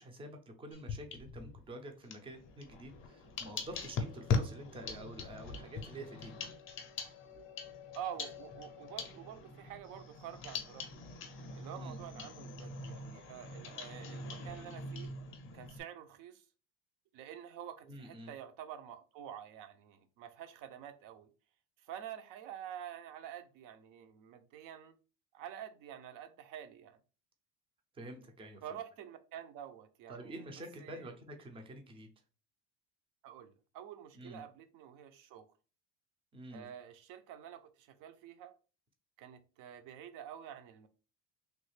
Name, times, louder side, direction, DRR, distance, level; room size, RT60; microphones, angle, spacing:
voice 1, 0.0-6.3 11.7-12.1 17.9-18.3 27.9-28.8 30.1-32.1 34.1-34.4 36.3-36.7, right 1 dB, 15° right, 0.4 m, -48 dB
sound 1, 0.7-1.6 2.0-15.8, left 4 dB, 35° left, 0.5 m, -41 dB
voice 2, 7.9-11.1 11.5-15.1 15.5-16.4 17.1-21.3 21.8-24.9 25.3-27.0 28.6-30.5 30.8-31.1 33.2-35.5 36.5-38.5 39.2-40.9, right 10 dB, 60° right, 0.6 m, -48 dB
3.1 x 2.3 x 3.2 m
cardioid pair, 150°, 37 cm